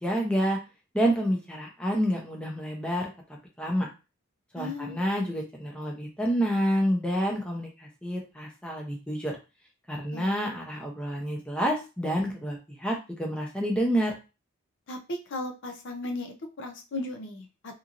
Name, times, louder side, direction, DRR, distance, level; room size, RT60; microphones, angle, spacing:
voice 1, 0.0-0.6 0.9-3.1 3.6-3.9 4.5-9.4 9.9-14.1, equal, 5° left, -1 dB, 0.6 m, -28 dB
voice 2, 4.6-5.1 10.1-10.4 14.9-17.8, left 1 dB, 60° left, 3 dB, 0.6 m, -36 dB
2.9 x 2.6 x 2.5 m, 0.30 s
head